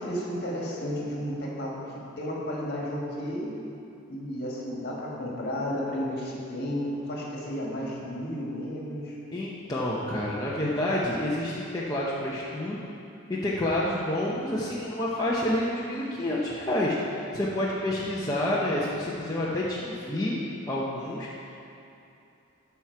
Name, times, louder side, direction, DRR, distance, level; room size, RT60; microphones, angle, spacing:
voice 1, 0.0-3.5 4.1-9.2, equal, 45° left, -4 dB, 1.8 m, -33 dB
voice 2, 9.3-12.8 13.3-20.4 20.7-21.3, left 1 dB, 15° left, -7 dB, 0.8 m, -28 dB
12.5 x 5.8 x 4.6 m, 2.7 s
head